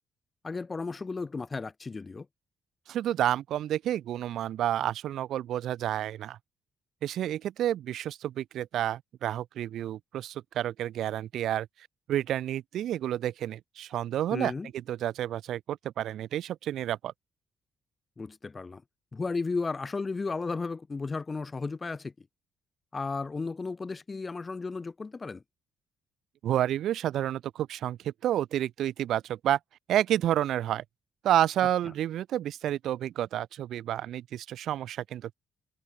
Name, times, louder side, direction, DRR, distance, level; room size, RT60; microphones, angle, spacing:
voice 1, 0.4-2.3 14.3-14.7 18.2-18.8 19.1-22.3 22.9-25.4, left 4 dB, 30° left, 0.6 m, -34 dB
voice 2, 2.9-6.4 7.0-11.7 12.1-17.1 26.4-29.6 29.9-30.8 31.2-35.3, right 12 dB, 75° right, 0.5 m, -30 dB
cardioid pair, 90°, 0 cm